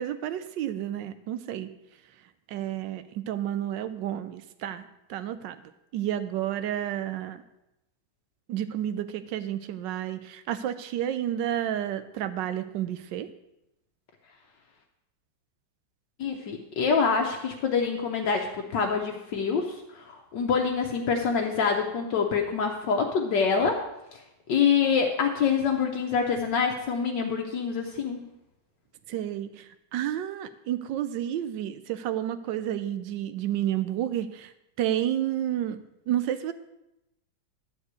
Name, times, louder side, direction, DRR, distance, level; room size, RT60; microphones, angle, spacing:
voice 1, 0.0-1.7 2.5-4.8 5.1-5.6 5.9-7.4 8.5-13.3 29.1-34.5 34.8-35.8 36.1-36.5, right 11 dB, 70° right, 11 dB, 1.2 m, -30 dB
voice 2, 16.2-23.8 24.5-28.2, left 6 dB, 65° left, 2 dB, 1.4 m, -26 dB
11.5 x 4.7 x 8.1 m, 0.89 s
omnidirectional pair, 2.2 m